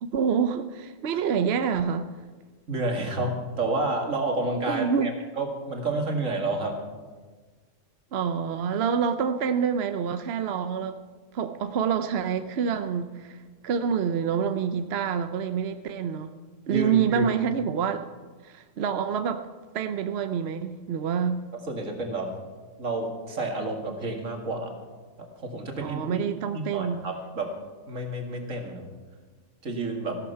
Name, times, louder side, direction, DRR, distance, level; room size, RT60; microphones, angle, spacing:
voice 1, 0.0-2.1 4.7-5.1 8.1-11.0 11.3-13.4 13.6-16.3 16.7-18.1 18.4-19.5 19.7-21.4 25.8-27.0, right 7 dB, 60° right, 9 dB, 0.9 m, -27 dB
voice 2, 2.7-5.1 5.4-6.8 16.7-17.2 21.5-22.3 22.8-24.7 25.2-26.2 26.5-27.5 27.9-28.9 29.6-30.2, right 2 dB, 80° right, 2 dB, 2.4 m, -30 dB
15.5 x 12.0 x 5.7 m, 1.4 s
omnidirectional pair, 1.3 m